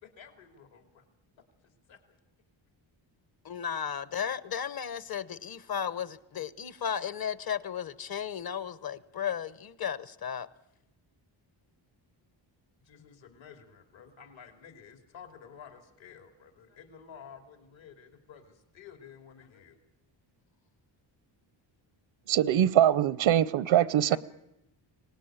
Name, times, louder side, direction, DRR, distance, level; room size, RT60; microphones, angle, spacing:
voice 1, 0.0-1.0 1.9-2.0 12.8-19.8 24.1-24.2, left 7 dB, 70° left, 2.9 m, -51 dB
voice 2, 3.4-10.5, left 8 dB, 50° left, 1.1 m, -34 dB
voice 3, 22.3-24.2, right 11 dB, 75° right, 0.8 m, -23 dB
24.5 x 18.5 x 9.0 m
cardioid pair, 100°, 47 cm